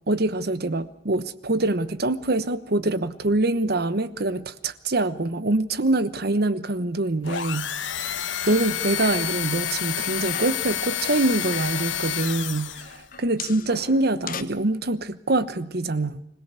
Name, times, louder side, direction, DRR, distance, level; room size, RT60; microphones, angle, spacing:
voice 1, 0.1-7.7 8.0-12.7 13.2-16.2, right 2 dB, 55° right, 14 dB, 1.1 m, -24 dB
sound 1, 7.2-13.0, left 10 dB, 85° left, 1.2 m, -29 dB
sound 2, 8.7-9.5 9.8-10.7 11.2-11.9 12.8-14.4, left 7 dB, 50° left, 1.0 m, -39 dB
25.5 x 17.5 x 8.3 m, 0.81 s
head